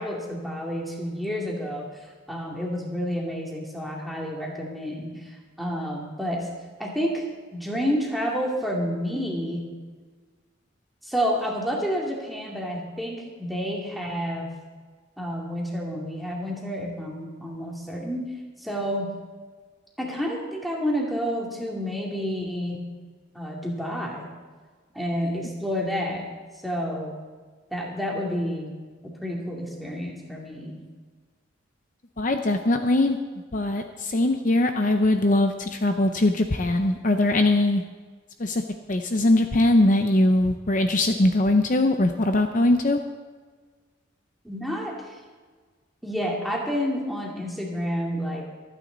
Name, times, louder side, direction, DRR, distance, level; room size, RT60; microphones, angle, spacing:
voice 1, 0.0-6.5 6.8-7.3 7.5-9.6 11.0-14.5 15.2-18.3 18.6-19.1 20.0-22.8 23.3-24.3 24.9-26.3 26.6-27.1 27.7-28.8 29.0-30.8 44.4-45.2 46.0-48.4, equal, ahead, -2 dB, 2.4 m, -29 dB
voice 2, 32.2-33.2 33.5-37.8 38.4-38.6 38.9-43.0, left 1 dB, 40° left, 6 dB, 0.7 m, -21 dB
25.0 x 9.3 x 4.0 m, 1.5 s
head